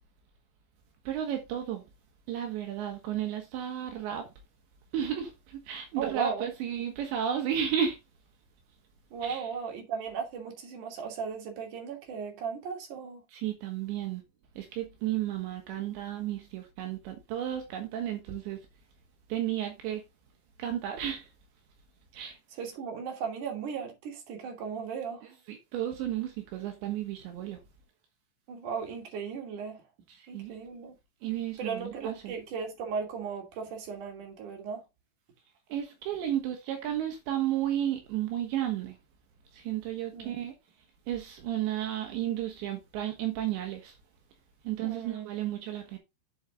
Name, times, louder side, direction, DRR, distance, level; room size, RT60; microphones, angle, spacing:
voice 1, 1.1-1.8 2.3-4.3 4.9-8.0 9.2-9.5 13.3-14.2 14.6-18.6 19.3-20.0 20.6-21.3 22.2-22.4 25.5-27.6 30.1-30.6 31.2-32.3 35.7-39.0 39.5-40.5 41.1-44.0 44.6-46.0, right 10 dB, 75° right, 3.6 m, -33 dB
voice 2, 6.0-6.5 9.1-13.2 22.6-25.3 28.5-29.8 30.3-30.9 31.6-34.8 40.1-40.3 44.8-45.3, right 6 dB, 50° right, 3.8 m, -36 dB
7.5 x 7.3 x 3.7 m
omnidirectional pair, 5.3 m